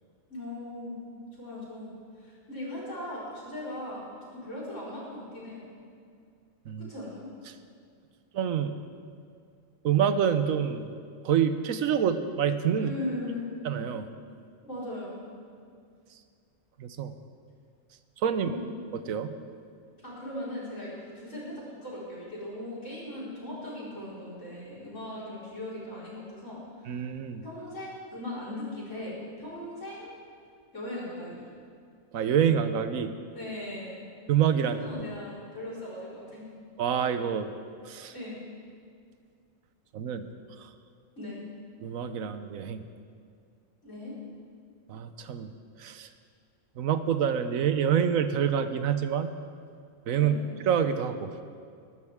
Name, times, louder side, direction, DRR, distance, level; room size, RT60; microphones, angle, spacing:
voice 1, 0.3-1.0 1.4-1.9 2.2-5.7 6.7-7.3 12.7-13.5 14.6-15.2 18.3-18.7 20.0-27.0 27.4-30.1 30.7-31.5 33.3-34.1 34.6-36.4 38.1-38.4 41.2-41.4 43.8-44.1 50.2-50.4, left 1 dB, 65° left, -8 dB, 5.2 m, -39 dB
voice 2, 8.3-8.7 9.8-10.9 11.2-12.9 13.6-14.1 16.8-17.1 18.2-18.5 18.9-19.4 26.9-27.4 32.1-33.1 34.3-34.8 36.8-37.5 37.8-38.1 39.9-40.3 40.6-40.7 41.8-42.8 44.9-45.5 45.8-46.1 46.8-49.3 50.1-51.4, right 8 dB, 90° right, 10 dB, 1.2 m, -27 dB
21.0 x 12.5 x 3.6 m, 2.2 s
omnidirectional pair, 1.4 m